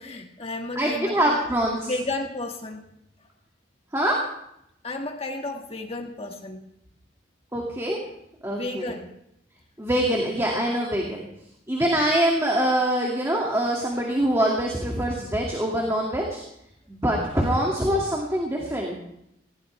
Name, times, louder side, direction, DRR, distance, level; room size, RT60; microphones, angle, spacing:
voice 1, 0.0-1.4 1.8-2.8 4.8-6.6 8.5-9.1, left 2 dB, 35° left, 3 dB, 1.9 m, -32 dB
voice 2, 0.8-1.9 3.9-4.2 7.5-8.0 8.4-8.9 9.8-11.3 11.7-16.4 16.9-19.0, right 1 dB, 15° right, -2 dB, 2.2 m, -24 dB
19.5 x 17.0 x 3.4 m, 0.78 s
head